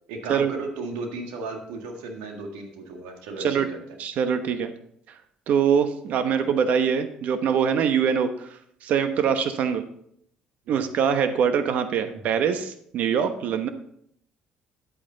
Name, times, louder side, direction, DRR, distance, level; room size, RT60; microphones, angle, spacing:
voice 1, 0.1-3.8 10.7-10.8 12.1-12.3, right 3 dB, 85° right, 3 dB, 1.8 m, -35 dB
voice 2, 4.0-4.7 5.5-9.8 10.7-13.7, right 7 dB, 65° right, 9 dB, 1.0 m, -23 dB
9.9 x 8.5 x 3.9 m, 0.70 s
supercardioid pair, 65°, 3 cm